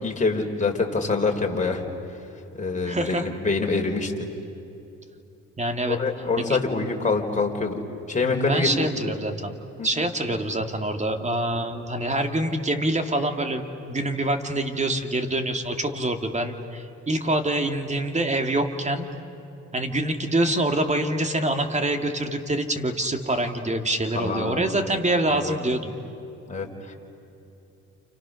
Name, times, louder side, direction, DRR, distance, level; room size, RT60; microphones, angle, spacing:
voice 1, 0.0-1.8 2.6-4.3 5.9-7.8 8.1-8.7 9.8-9.9 24.1-24.7 25.4-25.6 26.5-26.9, left 3 dB, 25° left, 1 dB, 4.0 m, -25 dB
voice 2, 2.8-3.3 5.6-6.0 6.4-6.6 8.2-9.5 9.8-19.1 19.7-26.0, right 1 dB, 25° right, 5 dB, 2.6 m, -25 dB
30.0 x 29.5 x 6.5 m, 2.9 s
cardioid pair, 90°, 30 cm